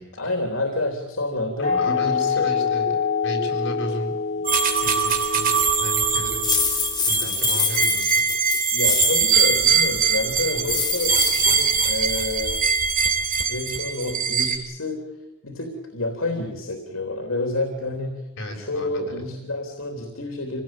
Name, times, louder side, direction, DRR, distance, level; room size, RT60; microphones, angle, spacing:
voice 1, 0.2-2.5 8.7-12.6 13.5-15.0 15.4-18.1 18.6-20.6, left 2 dB, 85° left, 3 dB, 3.4 m, -29 dB
voice 2, 1.6-3.0 3.2-5.5 5.8-8.3 10.5-10.7 11.3-11.4 18.4-19.3, equal, 60° left, 1 dB, 7.1 m, -34 dB
sound 1, 1.6-7.0, left 5 dB, 40° left, 5.1 m, -26 dB
sound 2, 4.4-14.6, right 5 dB, 45° right, 3.8 m, -22 dB
sound 3, 6.4-9.4 10.6-11.4, left 5 dB, 20° left, 4.6 m, -25 dB
26.0 x 18.0 x 9.1 m, 0.98 s
head